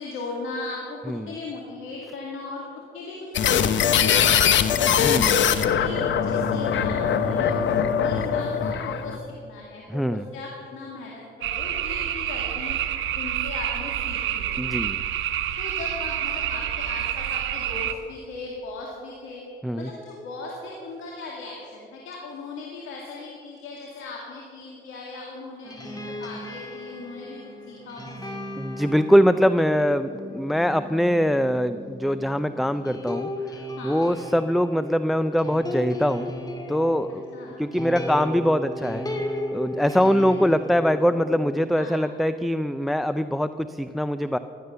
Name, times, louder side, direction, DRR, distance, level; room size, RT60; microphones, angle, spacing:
voice 1, 0.0-2.6 2.9-4.8 5.3-7.7 8.0-9.2 9.4-12.8 13.2-14.5 15.6-19.4 19.8-28.4 33.8-34.1 37.3-37.6 40.3-40.5 41.8-42.2, left 3 dB, 85° left, -2 dB, 2.6 m, -38 dB
sound 1, 3.3-9.2, left 8 dB, 70° left, 1.0 m, -21 dB
voice 2, 5.0-5.4 9.9-10.3 14.6-15.0 19.6-19.9 28.6-33.3 33.8-36.3 36.7-37.2 37.6-39.1 39.5-44.4, equal, ahead, 12 dB, 0.5 m, -23 dB
sound 2, 11.4-17.9, right 11 dB, 85° right, 1.1 m, -28 dB
sound 3, 25.6-41.7, left 1 dB, 20° left, 2.5 m, -35 dB
16.5 x 12.0 x 6.8 m, 2.4 s
cardioid pair, 90°, 20 cm